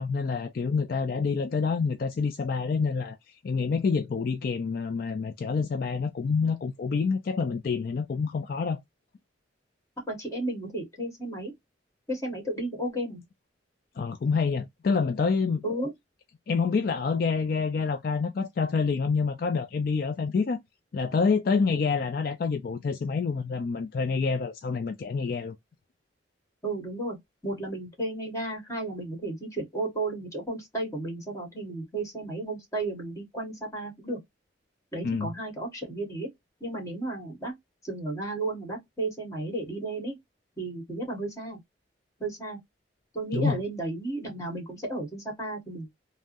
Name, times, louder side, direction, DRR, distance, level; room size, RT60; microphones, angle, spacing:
voice 1, 0.0-3.2 3.4-8.8 14.0-15.6 16.5-20.6 20.9-25.6 35.0-35.3 43.3-43.6, left 5 dB, 50° left, 0.3 m, -27 dB
voice 2, 10.1-11.5 12.1-13.2 15.6-15.9 26.6-27.2 27.4-34.2 34.9-36.3 36.6-37.5 37.8-40.2 40.6-41.6 42.2-42.6 43.1-45.9, right 2 dB, 15° left, 1.5 m, -33 dB
3.4 x 2.0 x 2.5 m
head